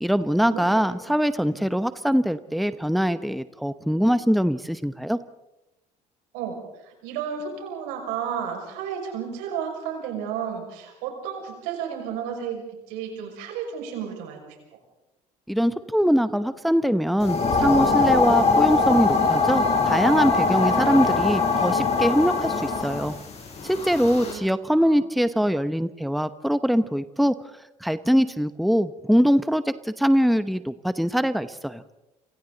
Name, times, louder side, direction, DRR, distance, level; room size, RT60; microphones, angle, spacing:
voice 1, 0.0-5.2 15.5-23.1 23.6-27.3 27.8-31.8, equal, ahead, 12 dB, 1.0 m, -22 dB
voice 2, 6.3-14.8 24.2-24.4 24.7-25.0, right 8 dB, 80° right, 2 dB, 6.1 m, -33 dB
sound 1, 17.2-24.3, left 4 dB, 40° left, 6.3 m, -22 dB
29.0 x 24.5 x 4.1 m, 0.96 s
hypercardioid pair, 70°, 17 cm